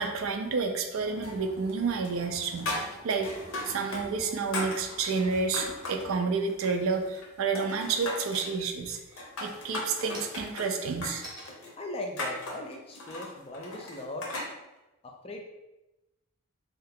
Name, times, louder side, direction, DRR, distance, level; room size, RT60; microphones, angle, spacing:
voice 1, 0.0-2.7 3.0-3.3 3.7-9.0 9.4-11.2, right 4 dB, 65° right, 4 dB, 0.4 m, -30 dB
sound 1, 0.9-6.1, right 1 dB, 85° right, 0.7 m, -51 dB
sound 2, 1.2-1.8 2.0-4.0 4.3-6.1 6.5-7.3 7.6-8.4 9.0-14.5, left 2 dB, 70° left, 0.7 m, -37 dB
sound 3, 8.3-8.9 9.3-13.8, right 1 dB, 20° right, 0.6 m, -49 dB
voice 2, 11.8-14.3 15.0-15.4, left 1 dB, 25° left, 2 dB, 0.3 m, -39 dB
2.7 x 2.3 x 3.5 m, 1.0 s
head